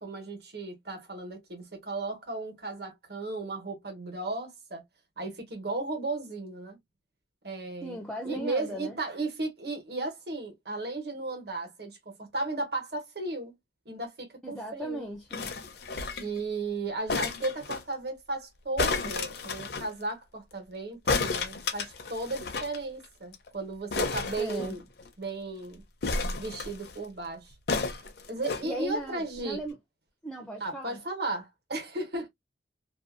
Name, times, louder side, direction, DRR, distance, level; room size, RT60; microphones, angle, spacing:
voice 1, 0.0-4.8 5.2-6.8 7.4-13.5 13.8-15.1 16.2-24.8 25.2-25.8 26.4-27.5 28.3-29.6 30.6-32.3, right 2 dB, 65° right, 1.2 m, -35 dB
voice 2, 7.8-9.0 14.4-15.5 24.4-24.7 28.6-29.8 30.2-31.0, right 1 dB, 5° left, 0.4 m, -37 dB
sound 1, 15.3-16.4 17.1-17.8 18.8-19.9 21.1-22.8 23.0-23.1 23.3-23.5 23.9-25.1 26.0-27.0 27.7-28.6 29.4-29.5, left 4 dB, 60° left, 0.5 m, -31 dB
2.7 x 2.2 x 2.4 m
head